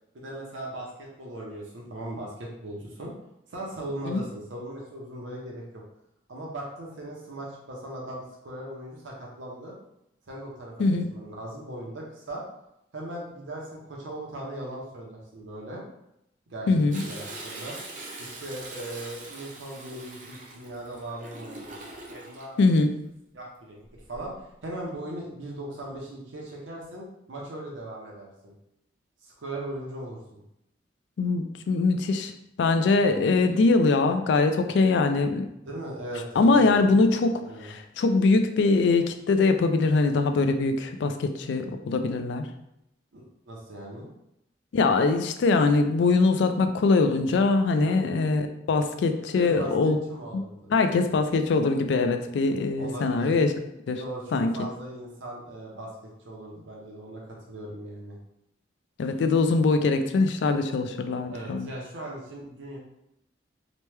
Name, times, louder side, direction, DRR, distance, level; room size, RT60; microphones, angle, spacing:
voice 1, 0.1-3.1 3.5-5.8 6.3-9.8 10.3-12.4 12.9-15.8 16.5-16.7 17.1-17.8 18.2-21.7 22.1-22.6 23.3-23.8 24.1-28.5 29.2-30.4 35.7-36.8 37.5-37.7 43.1-44.1 47.7-48.0 49.3-50.7 52.8-53.3 54.0-55.9 56.2-58.2 61.3-62.8, right 1 dB, 85° right, -2 dB, 0.7 m, -38 dB
voice 2, 16.7-17.0 22.6-22.9 31.2-32.3 32.6-35.5 36.4-42.5 44.7-50.0 50.3-50.4 50.7-53.5 53.9-54.0 54.3-54.5 59.0-61.7, left 3 dB, 70° left, 7 dB, 0.3 m, -22 dB
Toilet flush, 16.9-22.5 23.9-24.4 24.9-25.0, right 2 dB, 45° right, 0.5 m, -42 dB
3.0 x 2.2 x 3.2 m, 0.83 s
head